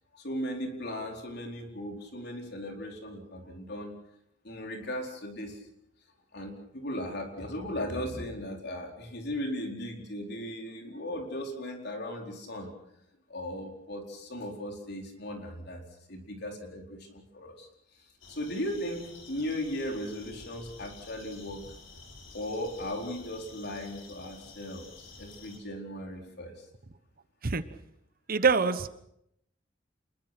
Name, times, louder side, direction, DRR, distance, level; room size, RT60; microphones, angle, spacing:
voice 1, 0.1-3.9 4.4-5.6 6.3-12.7 13.3-15.8 16.1-17.7 18.3-21.6 22.3-26.5, left 1 dB, 60° left, 2 dB, 4.4 m, -37 dB
sound 1, 18.2-25.6, left 3 dB, 75° left, 5.1 m, -50 dB
voice 2, 28.3-29.0, right 5 dB, 50° right, 12 dB, 1.1 m, -25 dB
27.5 x 21.5 x 6.0 m, 0.77 s
head